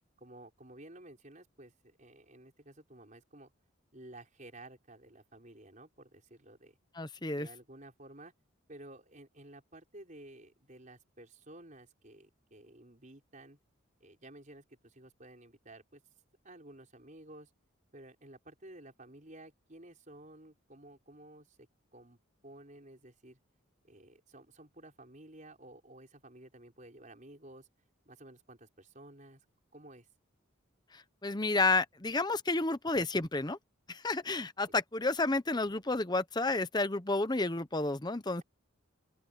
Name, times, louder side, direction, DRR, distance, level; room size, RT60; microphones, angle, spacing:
voice 1, 0.2-3.5 3.9-6.8 7.3-8.3 8.7-13.6 14.0-16.0 16.4-17.5 17.9-21.6 21.9-23.4 23.8-27.7 28.1-29.4 29.7-30.1 34.4-34.5, right 1 dB, 35° right, 5.3 m, -53 dB
voice 2, 7.0-7.5 30.9-33.6 33.9-38.4, left 2 dB, 20° left, 0.9 m, -31 dB
open air
head